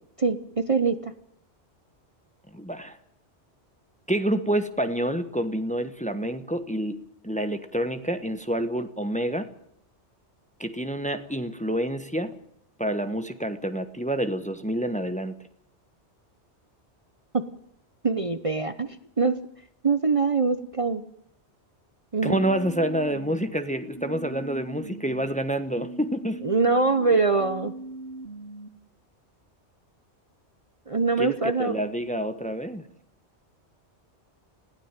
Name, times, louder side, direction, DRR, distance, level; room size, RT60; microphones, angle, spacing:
voice 1, 0.2-1.1 17.3-17.4 18.0-19.4 19.8-21.0 22.1-22.4 26.4-27.7 30.9-31.8, right 4 dB, 30° right, 10 dB, 1.0 m, -23 dB
voice 2, 2.5-3.0 4.1-7.0 7.2-9.5 10.6-12.3 12.8-15.3 22.2-26.4 31.2-31.3 31.6-32.8, right 1 dB, 5° left, 9 dB, 1.2 m, -28 dB
sound 1, 22.3-25.3 25.7-28.7, right 2 dB, 80° right, 3.1 m, -40 dB
21.0 x 16.0 x 9.0 m, 0.75 s
omnidirectional pair, 1.1 m